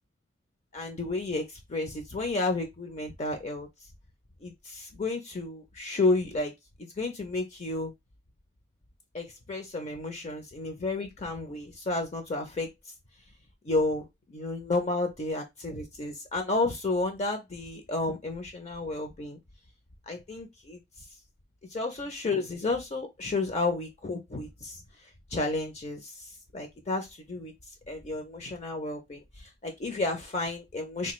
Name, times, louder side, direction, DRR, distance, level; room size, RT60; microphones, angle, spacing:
voice 1, 0.7-3.7 4.4-6.5 6.8-7.9 9.1-12.7 13.6-19.4 20.1-20.8 21.7-24.8 25.3-27.5 27.9-31.1, left 2 dB, 35° left, 5 dB, 0.4 m, -31 dB
3.3 x 2.2 x 3.0 m, 0.19 s
head